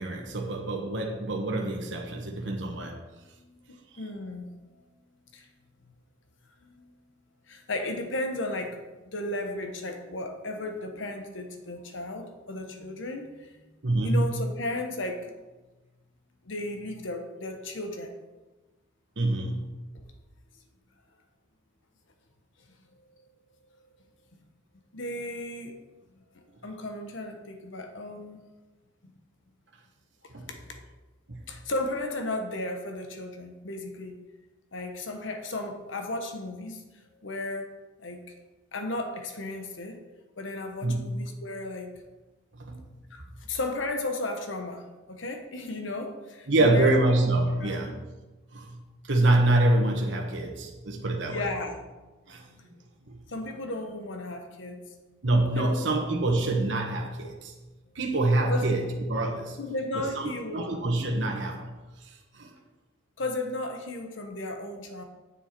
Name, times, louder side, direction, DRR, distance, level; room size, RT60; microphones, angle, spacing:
voice 1, 0.0-3.0 3.9-4.0 13.8-14.4 19.2-19.7 30.3-30.5 31.3-31.4 40.8-41.1 42.5-42.8 46.5-48.0 48.5-48.8 49.1-51.5 52.3-52.5 53.0-53.2 55.2-57.5 57.9-59.6 59.9-61.8 62.0-62.5, right 2 dB, 70° right, 1 dB, 1.2 m, -26 dB
voice 2, 4.0-4.5 5.3-5.4 6.6-6.9 7.5-8.8 9.1-13.3 14.0-15.3 16.5-18.1 24.9-25.7 26.3-28.4 31.5-34.1 34.7-36.8 37.2-37.7 38.0-38.2 38.7-40.0 40.4-41.9 43.1-43.2 43.5-46.9 47.6-48.0 51.3-51.8 52.5-52.7 53.3-54.8 55.5-56.0 58.5-58.6 59.6-60.8 63.2-65.0, left 2 dB, 80° left, 5 dB, 1.1 m, -34 dB
8.9 x 7.1 x 4.5 m, 1.1 s
head